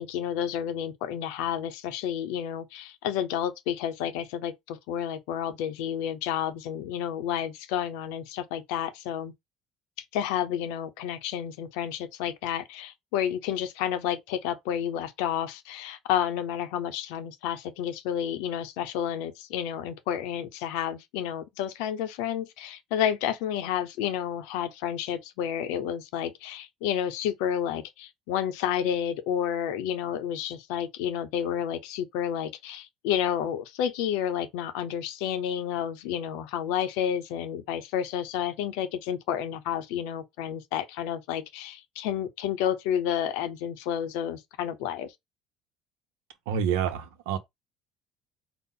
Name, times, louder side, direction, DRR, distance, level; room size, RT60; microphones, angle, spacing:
voice 1, 0.0-9.3 10.0-45.1, left 9 dB, 80° left, 0.6 m, -30 dB
voice 2, 46.5-47.4, right 8 dB, 85° right, 0.6 m, -28 dB
4.0 x 2.0 x 3.7 m
supercardioid pair, 75°, 0 cm